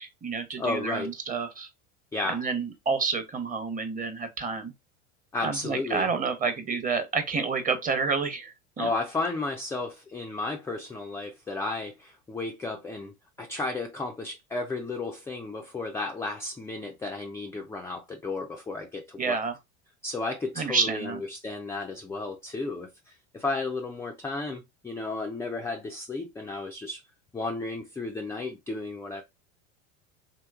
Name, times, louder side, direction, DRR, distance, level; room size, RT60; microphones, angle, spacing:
voice 1, 0.0-1.7 2.3-4.7 5.4-8.9 19.2-19.5 20.6-21.2, right 5 dB, 25° right, 0.8 m, -29 dB
voice 2, 0.6-1.1 2.1-2.4 5.3-6.1 8.8-19.4 20.0-27.0 27.3-29.2, left 3 dB, 10° left, 0.3 m, -33 dB
3.0 x 3.0 x 2.3 m
hypercardioid pair, 100°, 36 cm